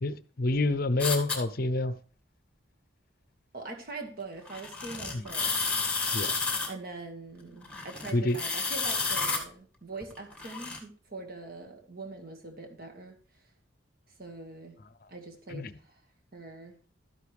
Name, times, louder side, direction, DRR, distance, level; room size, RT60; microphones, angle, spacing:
voice 1, 0.0-2.0 5.1-5.2 6.1-6.3 8.1-8.4 15.5-15.7, left 2 dB, 50° left, 0.6 m, -28 dB
sound 1, 1.0-1.4 4.5-6.7 7.6-9.4 10.0-10.8, left 4 dB, 5° left, 1.9 m, -31 dB
voice 2, 3.5-5.6 6.7-13.2 14.2-14.8 15.1-16.0 16.3-16.7, right 3 dB, 50° right, 1.9 m, -43 dB
12.5 x 9.7 x 3.4 m
head